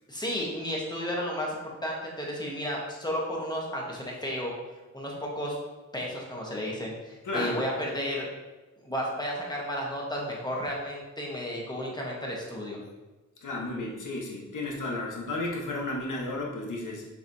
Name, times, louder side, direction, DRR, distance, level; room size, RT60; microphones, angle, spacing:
voice 1, 0.1-4.5 4.9-5.6 5.9-8.3 8.8-12.8, equal, 15° left, -2 dB, 1.1 m, -33 dB
voice 2, 7.2-7.6 13.4-17.1, left 2 dB, 85° left, -2 dB, 1.3 m, -33 dB
6.9 x 5.0 x 2.7 m, 1.1 s
wide cardioid pair, 175°, 30 cm